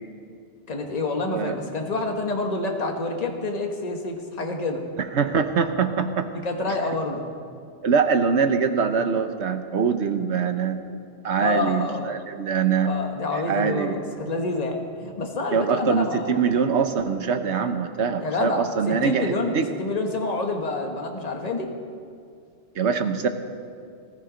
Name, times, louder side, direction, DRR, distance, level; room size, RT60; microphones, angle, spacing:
voice 1, 0.7-4.8 6.4-7.3 11.4-12.0 12.8-16.4 18.2-19.5 19.8-21.7, left 3 dB, 35° left, 3 dB, 1.4 m, -28 dB
voice 2, 5.0-6.3 7.8-10.8 11.2-12.9 13.3-14.0 15.5-19.7 22.7-23.3, right 6 dB, 70° right, 8 dB, 1.3 m, -23 dB
19.5 x 14.0 x 5.1 m, 2.3 s
omnidirectional pair, 1.2 m